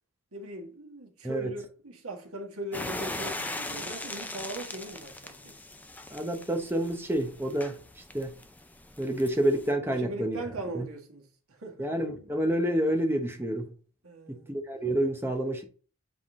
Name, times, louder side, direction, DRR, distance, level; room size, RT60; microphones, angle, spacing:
voice 1, 0.3-5.5 9.9-11.9 14.0-14.5, right 1 dB, 85° right, 1.6 m, -40 dB
sound 1, 2.7-9.7, left 2 dB, 10° left, 0.5 m, -40 dB
voice 2, 6.1-7.8 8.1-8.4 9.0-10.4 10.7-10.9 11.8-13.7 14.3-15.6, right 1 dB, 10° right, 1.0 m, -28 dB
7.6 x 3.8 x 3.7 m
head